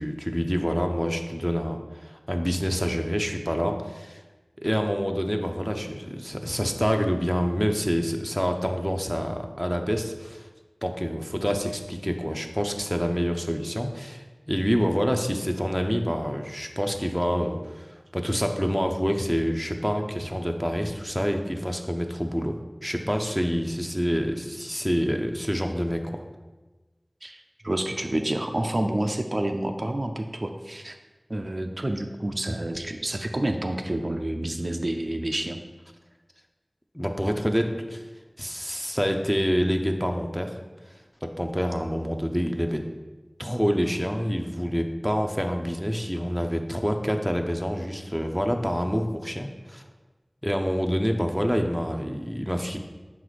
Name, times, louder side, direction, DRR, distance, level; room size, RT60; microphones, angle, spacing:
voice 1, 0.0-4.2 4.6-10.5 10.8-17.9 18.1-26.2 36.9-38.0 38.4-40.5 41.2-42.9 43.4-49.8 50.4-52.8, equal, 5° left, 4 dB, 0.6 m, -27 dB
voice 2, 27.2-31.0 31.3-35.6, right 1 dB, 65° right, 5 dB, 0.5 m, -29 dB
5.7 x 4.7 x 4.1 m, 1.2 s
wide cardioid pair, 40°, 0 cm